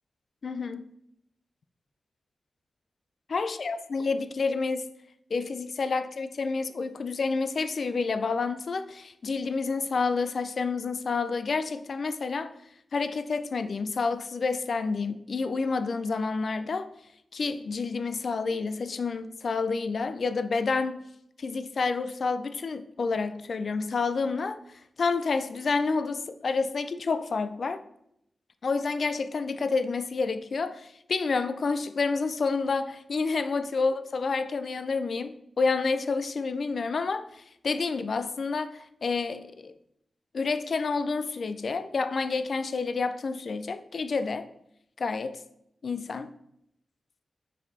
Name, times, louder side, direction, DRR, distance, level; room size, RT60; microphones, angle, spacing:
voice 1, 0.4-0.9 3.3-4.9 5.3-12.5 12.9-16.9 17.3-21.0 21.4-24.6 25.0-27.8 28.6-39.7 40.3-44.5 45.0-45.4 45.8-46.3, left 4 dB, 60° left, 0.4 m, -29 dB
5.6 x 4.8 x 4.0 m
wide cardioid pair, 110°, 0 cm